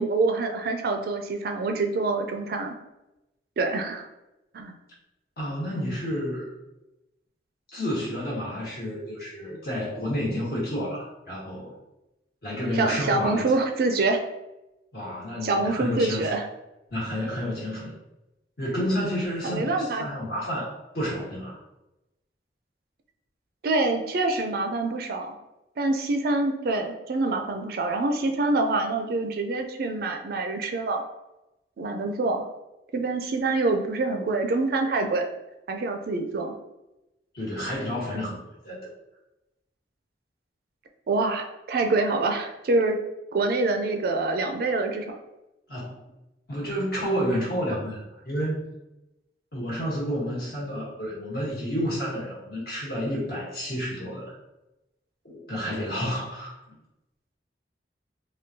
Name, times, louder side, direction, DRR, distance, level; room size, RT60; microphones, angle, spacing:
voice 1, 0.0-2.7 3.6-4.1 4.5-4.7 12.8-14.2 15.4-16.5 19.4-20.0 23.6-25.3 25.8-31.0 31.8-32.4 32.9-35.3 35.7-36.6 41.1-43.0 43.3-45.1, right 3 dB, 55° right, 5 dB, 0.4 m, -26 dB
voice 2, 5.4-6.5 7.7-11.7 12.4-13.6 14.9-16.3 16.9-17.9 18.6-21.6 37.3-38.4 38.6-38.9 45.7-46.0 46.5-48.6 49.5-54.3 55.2-56.6, equal, 55° left, -6 dB, 1.2 m, -30 dB
3.6 x 2.2 x 2.7 m, 0.95 s
head